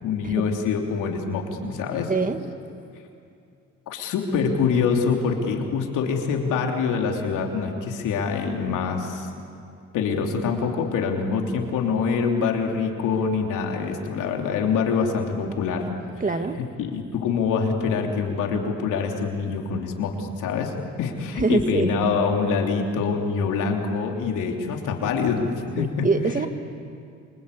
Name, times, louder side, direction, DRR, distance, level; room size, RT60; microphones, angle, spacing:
voice 1, 0.0-2.1 3.9-9.3 9.9-15.9 16.5-20.7 21.0-25.5 25.7-26.1, left 5 dB, 90° left, 2 dB, 3.3 m, -25 dB
voice 2, 2.1-2.5 16.2-16.6 21.4-21.9 25.8-26.5, right 3 dB, 25° right, 8 dB, 1.7 m, -24 dB
28.0 x 25.0 x 8.5 m, 2.5 s
cardioid pair, 90°, 30 cm